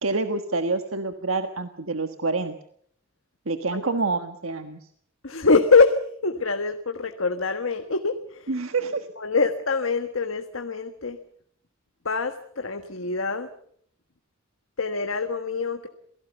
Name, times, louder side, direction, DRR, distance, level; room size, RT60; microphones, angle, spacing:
voice 1, 0.0-2.5 3.5-4.8 8.5-9.1, right 3 dB, 85° right, 7 dB, 1.5 m, -27 dB
voice 2, 5.2-8.5 9.2-11.2 12.0-13.5 14.8-15.9, left 4 dB, 75° left, 6 dB, 1.5 m, -24 dB
27.5 x 18.0 x 7.0 m, 0.65 s
head